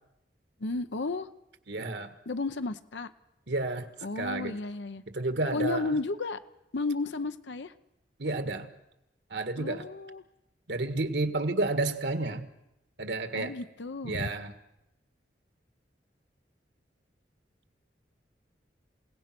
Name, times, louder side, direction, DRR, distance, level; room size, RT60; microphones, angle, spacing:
voice 1, 0.6-1.3 2.3-3.1 4.0-5.0 5.5-6.4 6.7-7.7 9.5-10.2 13.3-14.3, left 3 dB, 85° left, 10 dB, 0.8 m, -33 dB
voice 2, 1.7-2.1 3.5-3.9 4.2-4.5 5.1-5.9 8.2-8.7 9.3-9.8 10.7-12.4 13.0-13.5 14.0-14.5, right 2 dB, 75° right, 9 dB, 1.7 m, -30 dB
28.5 x 17.5 x 6.1 m, 0.87 s
head